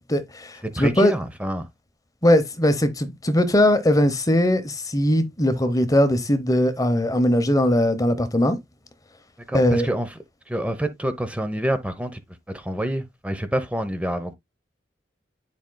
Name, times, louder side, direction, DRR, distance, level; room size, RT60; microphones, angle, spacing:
voice 1, 0.1-1.1 2.2-8.6 9.5-9.9, left 1 dB, 20° left, 0.9 m, -20 dB
voice 2, 0.6-1.7 9.5-10.2 10.5-12.2 12.5-14.3, right 1 dB, 10° right, 0.7 m, -27 dB
10.0 x 5.1 x 2.2 m
head